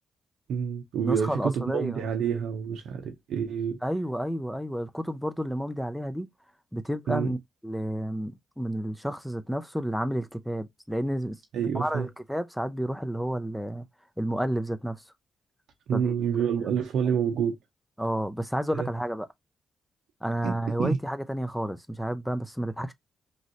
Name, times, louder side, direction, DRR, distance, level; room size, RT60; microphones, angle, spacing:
voice 1, 0.5-3.8 7.1-7.4 11.5-12.1 15.9-17.5 18.7-18.9 20.4-21.0, right 7 dB, 80° right, 0.5 m, -28 dB
voice 2, 1.0-2.0 3.8-6.3 6.7-7.4 7.6-11.4 11.7-13.9 14.2-15.0 15.9-16.1 18.0-19.3 20.2-22.9, equal, ahead, 0.5 m, -30 dB
3.2 x 2.6 x 2.6 m
supercardioid pair, 65°, 0 cm